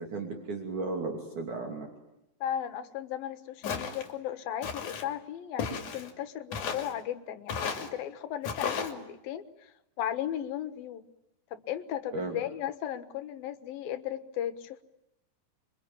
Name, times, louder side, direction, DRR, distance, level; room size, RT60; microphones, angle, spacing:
voice 1, 0.0-1.9 12.1-12.4, right 3 dB, 55° right, 2 dB, 4.3 m, -35 dB
voice 2, 2.4-9.7 10.0-11.0 11.5-14.8, left 10 dB, 80° left, 10 dB, 3.1 m, -36 dB
Walk footsteps, 3.6-4.1 4.6-5.1 5.6-6.1 6.5-6.9 7.5-7.9 8.4-8.9, left 6 dB, 60° left, 4.0 m, -34 dB
28.0 x 24.0 x 8.8 m, 0.88 s
omnidirectional pair, 4.2 m